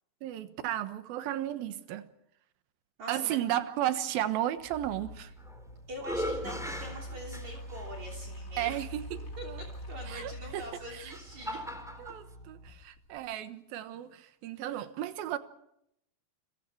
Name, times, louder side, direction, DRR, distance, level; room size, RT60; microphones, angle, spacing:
voice 1, 0.2-2.1 3.1-5.3 8.6-9.0 9.4-9.6 10.1-10.6 10.9-11.1 12.0-15.4, right 12 dB, 75° right, 3.0 m, -34 dB
voice 2, 3.0-3.4 5.9-8.8 9.4-9.5 9.9-11.6, right 1 dB, 50° right, 4.5 m, -43 dB
sound 1, 4.6-13.2, equal, 20° left, 3.1 m, -44 dB
sound 2, 5.2-5.6 6.0-7.9 8.6-8.7 10.5-12.2, equal, ahead, 3.2 m, -38 dB
29.5 x 24.5 x 4.7 m
omnidirectional pair, 4.4 m